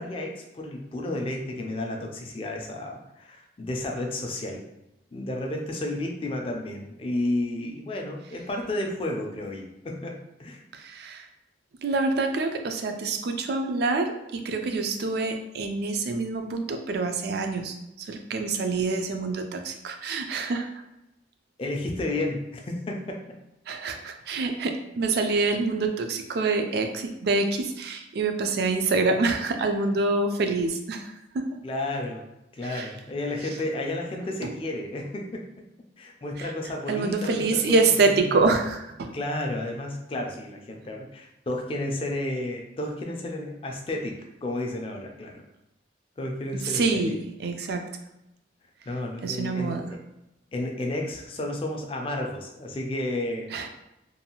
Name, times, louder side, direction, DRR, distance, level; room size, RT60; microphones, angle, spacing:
voice 1, 0.0-4.6 5.1-10.6 21.6-23.4 31.6-32.3 32.5-35.6 36.0-37.6 37.9-38.4 39.1-45.4 46.2-47.2 48.9-50.0 50.5-53.7, left 1 dB, 30° left, 2 dB, 0.3 m, -32 dB
voice 2, 10.7-11.3 11.8-20.8 23.7-31.4 32.6-32.9 34.4-34.5 36.4-36.5 36.9-39.1 46.6-47.9 49.2-49.8 53.5-53.7, right 3 dB, 55° right, 6 dB, 0.3 m, -26 dB
2.6 x 2.3 x 2.8 m, 0.90 s
head